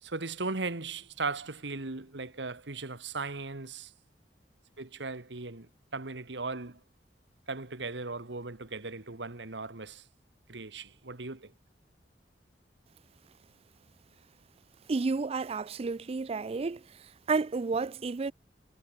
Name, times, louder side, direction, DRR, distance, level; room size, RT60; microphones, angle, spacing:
voice 1, 0.0-3.9 4.8-6.8 7.5-10.1 10.5-11.5, right 3 dB, 85° right, 1.7 m, -37 dB
voice 2, 14.9-16.8 17.3-18.3, right 4 dB, 35° right, 0.4 m, -31 dB
head